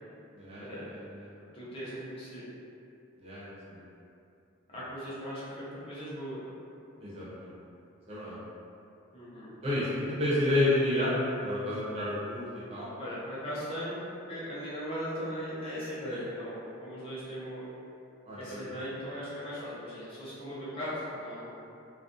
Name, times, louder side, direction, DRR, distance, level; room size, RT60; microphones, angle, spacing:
voice 1, 0.3-1.3 3.2-3.8 7.0-7.5 8.1-8.4 9.6-11.1 11.4-12.9 18.3-18.7, left 1 dB, 30° right, -9 dB, 0.5 m, -31 dB
voice 2, 1.5-2.4 4.7-6.4 9.1-9.5 13.0-14.0 14.3-17.7 18.3-21.5, equal, 25° left, -9 dB, 0.6 m, -38 dB
2.4 x 2.1 x 2.4 m, 2.6 s
head